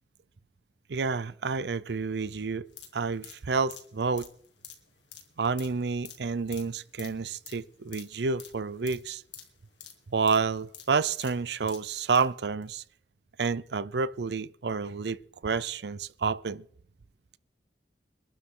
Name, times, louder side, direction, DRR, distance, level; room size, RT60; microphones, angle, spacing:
voice 1, 0.9-2.7 2.9-4.3 5.4-9.2 10.1-12.8 13.4-16.6, right 4 dB, 70° right, 0.6 m, -29 dB
sound 1, 2.7-12.3 12.6-12.7, left 9 dB, 90° left, 2.4 m, -49 dB
23.0 x 12.0 x 3.9 m
head